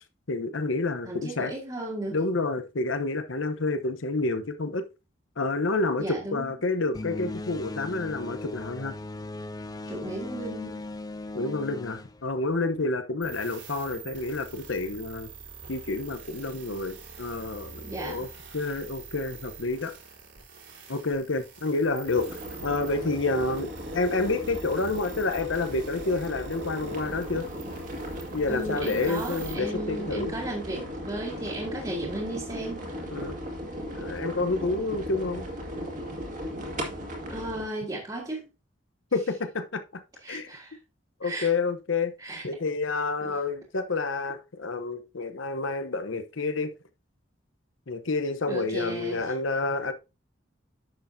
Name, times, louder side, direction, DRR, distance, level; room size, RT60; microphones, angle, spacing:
voice 1, 0.3-1.5 2.1-4.8 5.4-8.9 11.3-15.3 15.7-18.3 18.5-19.9 20.9-27.5 28.3-30.3 33.1-33.4 33.9-35.5 39.1-40.0 40.3-40.5 41.2-42.1 42.4-46.7 47.9-49.9, left 3 dB, 85° left, 0.9 m, -29 dB
voice 2, 1.0-2.2 6.0-6.5 9.9-10.8 17.8-18.3 28.5-32.8 37.3-38.4 40.2-40.8 41.2-41.5 42.2-42.5 43.2-43.4 48.5-49.3, right 1 dB, 20° right, 1.8 m, -35 dB
sound 1, 6.9-13.0, left 2 dB, 20° left, 0.4 m, -38 dB
sound 2, 13.2-29.5, right 6 dB, 70° right, 3.3 m, -46 dB
sound 3, 22.1-37.6, equal, 40° right, 1.9 m, -37 dB
10.0 x 6.7 x 2.7 m
head